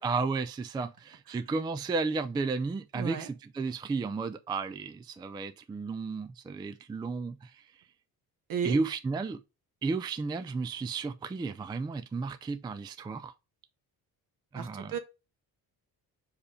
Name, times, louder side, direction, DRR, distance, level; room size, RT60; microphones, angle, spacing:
voice 1, 0.0-7.6 8.6-9.4 9.8-13.3 14.5-14.9, right 4 dB, 10° right, 0.3 m, -33 dB
voice 2, 2.9-3.3 8.5-8.8 14.5-15.0, right 7 dB, 60° right, 1.2 m, -34 dB
5.0 x 4.9 x 5.0 m
cardioid pair, 145°, 38 cm